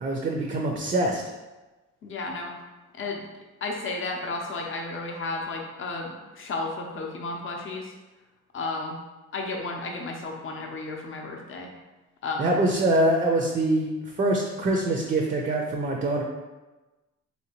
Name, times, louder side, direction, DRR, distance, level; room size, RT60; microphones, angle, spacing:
voice 1, 0.0-1.2 12.4-13.9 14.2-16.2, right 1 dB, 30° right, 1 dB, 0.4 m, -24 dB
voice 2, 2.0-2.5 2.9-3.3 3.6-7.9 8.5-9.0 9.3-11.7 12.2-12.7, left 3 dB, 45° left, 1 dB, 0.6 m, -33 dB
3.3 x 2.7 x 2.9 m, 1.1 s
cardioid pair, 90°, 30 cm